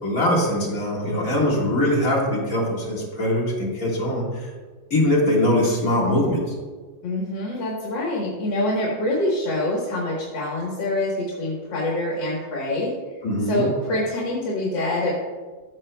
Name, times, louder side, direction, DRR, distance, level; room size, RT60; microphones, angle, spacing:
voice 1, 0.0-4.5 4.9-6.6 13.2-13.7, left 1 dB, 45° left, -4 dB, 2.2 m, -22 dB
voice 2, 7.0-15.2, left 1 dB, 70° left, -4 dB, 2.0 m, -25 dB
14.0 x 6.3 x 2.2 m, 1.4 s
omnidirectional pair, 2.1 m